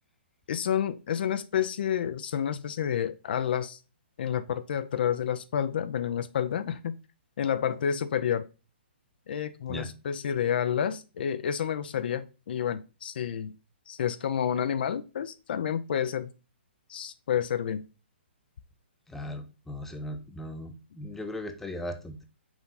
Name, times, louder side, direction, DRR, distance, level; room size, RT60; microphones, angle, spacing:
voice 1, 0.5-3.8 4.2-7.0 7.4-8.4 9.3-13.5 13.9-16.3 16.9-17.8, left 8 dB, 60° left, 12 dB, 0.5 m, -29 dB
voice 2, 19.1-22.2, left 1 dB, 5° left, 6 dB, 0.7 m, -38 dB
6.1 x 4.0 x 3.9 m, 0.31 s
hypercardioid pair, 145°, 6 cm